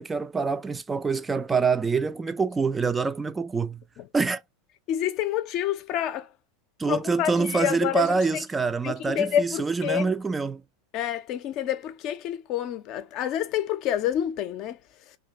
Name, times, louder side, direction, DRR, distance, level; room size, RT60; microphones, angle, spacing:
voice 1, 0.0-3.8 4.1-4.4 6.8-10.6, right 4 dB, 15° right, 0.3 m, -26 dB
voice 2, 4.9-6.3 6.9-8.4 8.8-10.1 10.9-14.8, left 10 dB, 45° left, 0.5 m, -28 dB
2.8 x 2.2 x 3.4 m
figure-of-eight pair, 90°, 0 cm